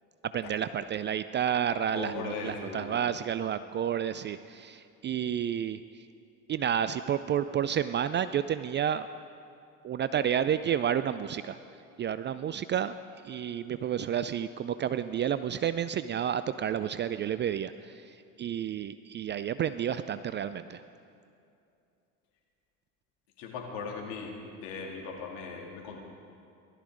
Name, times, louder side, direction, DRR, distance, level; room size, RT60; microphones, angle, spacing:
voice 1, 0.2-5.8 6.5-9.1 9.8-11.6 12.0-13.0 13.2-20.8, right 9 dB, 25° right, 13 dB, 0.3 m, -30 dB
voice 2, 1.7-3.0 23.4-24.4 24.6-26.0, left 5 dB, 65° left, -1 dB, 3.1 m, -39 dB
17.5 x 12.5 x 5.1 m, 2.6 s
hypercardioid pair, 70°, 44 cm